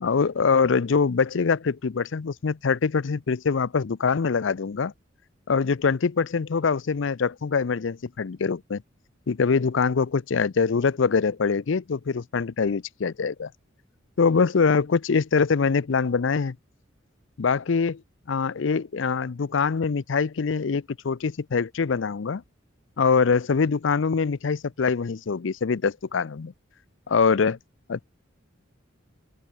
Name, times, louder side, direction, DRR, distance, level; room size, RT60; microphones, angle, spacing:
voice 1, 0.0-4.9 5.5-8.8 9.3-13.5 14.2-16.6 17.4-18.0 18.3-22.4 23.0-26.5 27.1-27.6 27.9-28.1, left 5 dB, 65° left, 0.5 m, -24 dB
open air
head